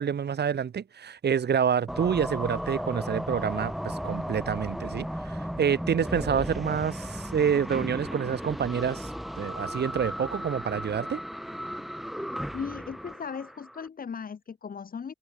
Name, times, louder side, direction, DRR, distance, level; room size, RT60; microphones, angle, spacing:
voice 1, 0.0-9.1 9.4-11.2, right 7 dB, 85° right, 2.7 m, -28 dB
sound 1, 1.9-13.9, equal, ahead, 1.4 m, -35 dB
voice 2, 12.5-15.1, left 6 dB, 60° left, 4.0 m, -37 dB
wide cardioid pair, 175°, 17 cm